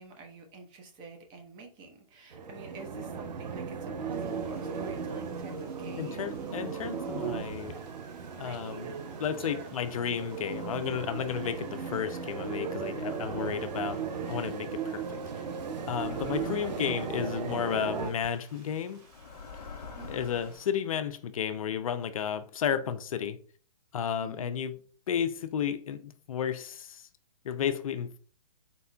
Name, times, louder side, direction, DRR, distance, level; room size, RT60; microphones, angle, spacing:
voice 1, 0.0-6.5 8.4-9.0 9.4-9.7 16.1-16.4 20.0-20.6 24.2-24.5, right 3 dB, 20° right, 0.8 m, -48 dB
sound 1, 2.3-18.1, right 6 dB, 80° right, 0.6 m, -36 dB
sound 2, 4.1-20.7, right 2 dB, 50° right, 2.2 m, -59 dB
voice 2, 6.0-7.8 8.4-8.9 9.2-15.2 15.9-19.0 20.1-23.4 23.9-24.7 25.1-27.1 27.4-28.2, left 8 dB, 55° left, 0.4 m, -33 dB
sound 3, 16.0-17.0 18.0-18.3 19.0-20.6, left 5 dB, 70° left, 1.0 m, -45 dB
4.3 x 4.1 x 2.3 m
hypercardioid pair, 145°, 21 cm